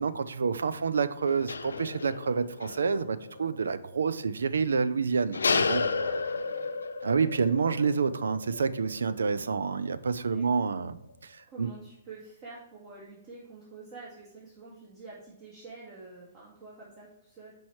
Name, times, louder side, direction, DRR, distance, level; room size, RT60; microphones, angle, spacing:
voice 1, 0.0-5.8 7.0-11.7, right 5 dB, 85° right, 14 dB, 0.4 m, -28 dB
sound 1, 1.2-3.9 4.2-4.3 5.3-10.2 10.5-10.8, left 4 dB, 85° left, 0.4 m, -33 dB
voice 2, 6.0-6.8 10.3-10.4 11.5-17.5, right 3 dB, 40° right, -7 dB, 2.0 m, -48 dB
5.4 x 4.6 x 4.7 m, 0.86 s
hypercardioid pair, 135°, 0 cm